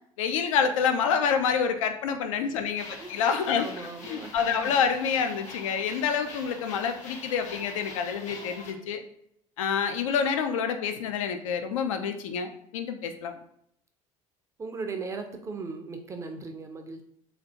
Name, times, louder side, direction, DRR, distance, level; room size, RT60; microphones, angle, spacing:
voice 1, 0.2-3.7 4.1-9.0 9.6-13.3, left 6 dB, 65° left, 7 dB, 0.4 m, -27 dB
sound 1, 2.8-8.7, left 3 dB, 40° left, 0.7 m, -44 dB
voice 2, 3.0-4.6 14.6-17.0, right 4 dB, 15° right, 5 dB, 0.4 m, -38 dB
3.2 x 2.3 x 2.7 m, 0.71 s
figure-of-eight pair, 65°, 18 cm